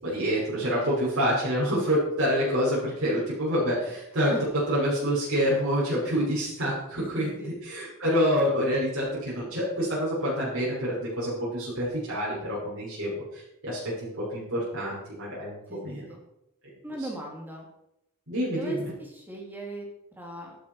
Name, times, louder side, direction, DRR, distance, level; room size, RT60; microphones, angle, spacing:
voice 1, 0.0-4.3 4.7-16.0 18.3-18.8, equal, 60° right, -8 dB, 6.1 m, -27 dB
voice 2, 16.8-17.7 18.4-20.6, right 1 dB, 10° right, 0 dB, 3.0 m, -39 dB
13.0 x 12.0 x 4.7 m, 0.82 s
head